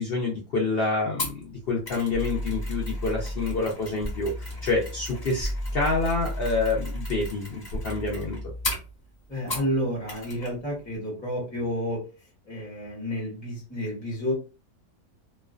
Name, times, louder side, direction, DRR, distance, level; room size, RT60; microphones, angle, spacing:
voice 1, 0.0-8.4, left 3 dB, 70° left, -1 dB, 0.5 m, -27 dB
Mechanisms, 1.2-9.8 10.1-10.5 10.8-10.9, left 1 dB, 35° left, 1.0 m, -38 dB
sound 1, 2.1-8.8, equal, 35° right, 0.6 m, -34 dB
voice 2, 9.3-12.0 12.5-14.3, equal, 10° left, -5 dB, 0.6 m, -30 dB
2.4 x 2.1 x 2.3 m, 0.33 s
omnidirectional pair, 1.6 m